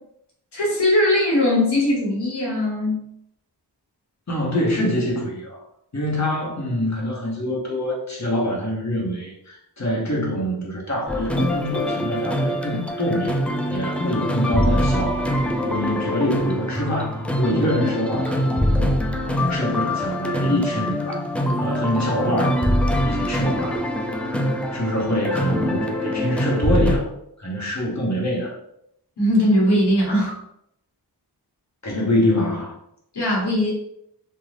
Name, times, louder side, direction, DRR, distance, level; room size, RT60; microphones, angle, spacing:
voice 1, 0.5-3.1 29.2-30.4 33.1-33.7, left 1 dB, 70° left, -3 dB, 1.1 m, -20 dB
voice 2, 4.3-5.7 5.9-13.4 13.7-15.3 15.6-19.0 19.5-21.3 21.6-22.6 23.0-23.9 24.7-27.1 27.4-28.6 31.8-32.7, left 1 dB, 40° left, -3 dB, 1.0 m, -25 dB
sound 1, 11.1-27.0, equal, 5° left, 0.4 m, -23 dB
2.5 x 2.3 x 3.3 m, 0.75 s
cardioid pair, 50°, 42 cm